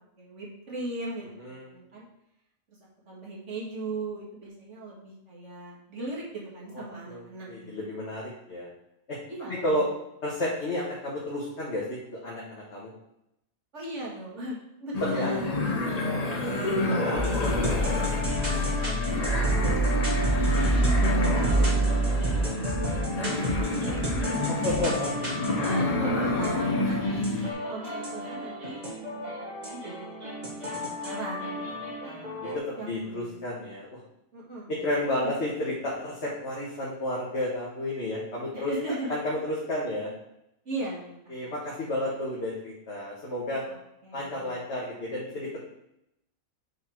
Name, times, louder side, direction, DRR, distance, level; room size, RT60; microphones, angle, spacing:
voice 1, 0.2-2.1 2.7-2.8 3.1-7.7 9.3-10.0 13.7-15.9 16.2-18.0 18.5-25.2 25.6-27.0 27.7-28.8 29.1-31.7 32.0-32.4 32.8-33.7 34.3-34.9 38.5-39.2 40.6-41.3 43.7-44.6, right 2 dB, 55° right, -5 dB, 2.4 m, -39 dB
voice 2, 7.1-8.7 9.5-9.9 10.2-12.0 12.2-12.9 15.1-15.3 17.0-17.2 24.5-25.1 32.2-34.0 34.7-38.7 39.1-40.1 41.3-43.6 44.1-45.6, left 1 dB, 50° left, -6 dB, 1.8 m, -31 dB
sound 1, 14.9-27.5, left 2 dB, 30° left, 0.9 m, -29 dB
sound 2, 17.1-32.6, right 1 dB, 30° right, 1.8 m, -29 dB
7.4 x 4.1 x 4.6 m, 0.81 s
omnidirectional pair, 1.5 m